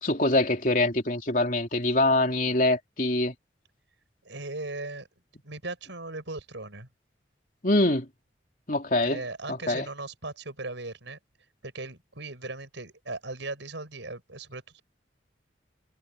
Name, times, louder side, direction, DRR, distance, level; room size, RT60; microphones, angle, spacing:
voice 1, 0.0-3.3 7.6-8.1 8.7-9.2 9.5-9.9, left 2 dB, 45° left, 3.3 m, -24 dB
voice 2, 4.2-5.1 5.4-6.9 9.0-11.2 11.6-14.8, right 2 dB, 90° right, 6.8 m, -38 dB
head